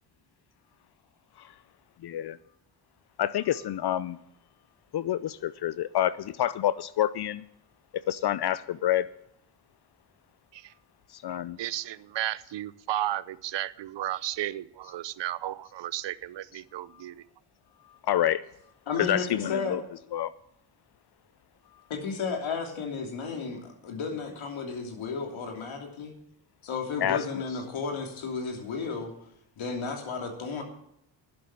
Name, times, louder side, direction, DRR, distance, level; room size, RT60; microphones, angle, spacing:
voice 1, 2.0-2.4 3.2-4.2 4.9-7.4 8.1-9.1 11.2-11.6 18.1-18.4 19.1-19.8 20.1-20.3 27.0-27.2, left 11 dB, 55° left, 17 dB, 0.6 m, -27 dB
voice 2, 11.3-17.2, right 13 dB, 60° right, 19 dB, 0.7 m, -34 dB
voice 3, 18.9-19.8 21.9-26.1 26.6-29.1 29.6-30.6, left 5 dB, 70° left, 2 dB, 3.1 m, -33 dB
11.5 x 7.7 x 8.4 m, 0.75 s
supercardioid pair, 60°, 49 cm